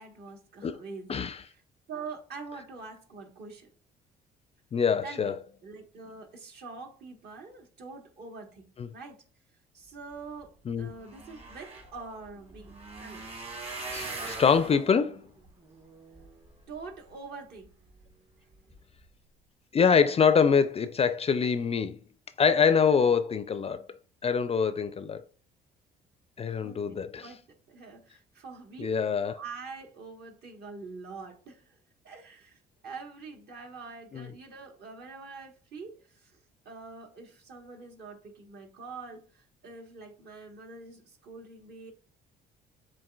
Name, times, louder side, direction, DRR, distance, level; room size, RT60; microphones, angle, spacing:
voice 1, 0.0-1.6 1.9-3.7 5.0-5.4 5.6-9.2 9.7-13.3 16.7-17.7 26.5-29.1 29.3-31.8 32.0-41.9, right 4 dB, 60° right, 1.4 m, -45 dB
voice 2, 4.7-5.3 8.8-8.9 10.7-10.9 13.9-15.3 19.7-22.0 22.4-23.9 24.2-25.2 26.4-27.3 28.8-29.4 34.1-34.3, left 6 dB, 30° left, 0.4 m, -25 dB
sound 1, 10.4-10.5 10.7-17.1 17.7-18.1 18.5-18.7 19.0-19.1, right 3 dB, 30° right, 1.4 m, -42 dB
7.2 x 2.5 x 2.4 m
supercardioid pair, 70°, 20 cm